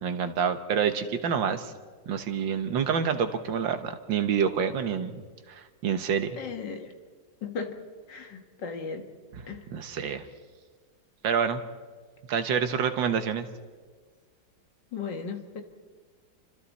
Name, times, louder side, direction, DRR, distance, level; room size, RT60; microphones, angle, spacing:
voice 1, 0.0-1.7 2.1-5.2 5.5-6.3 9.7-10.2 11.2-11.6 12.3-13.5, right 7 dB, 75° right, 9 dB, 1.9 m, -27 dB
voice 2, 6.4-6.9 7.4-7.8 8.1-9.0 9.5-9.6 14.9-15.6, left 5 dB, 70° left, 6 dB, 2.3 m, -36 dB
30.0 x 25.0 x 4.2 m, 1.5 s
omnidirectional pair, 2.1 m